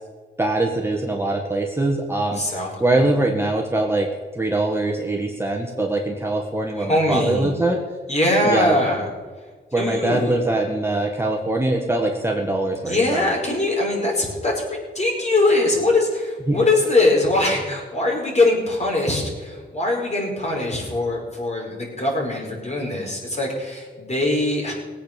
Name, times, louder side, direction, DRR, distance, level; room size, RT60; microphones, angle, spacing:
voice 1, 0.4-7.8 8.4-8.8 9.7-13.3 16.5-16.6, right 2 dB, 10° right, 0 dB, 1.8 m, -23 dB
voice 2, 2.3-3.1 6.8-7.5 8.1-9.1 9.8-10.3 12.8-24.7, left 2 dB, 35° left, -1 dB, 5.4 m, -22 dB
18.5 x 8.5 x 6.9 m, 1.4 s
cardioid pair, 65°, 20 cm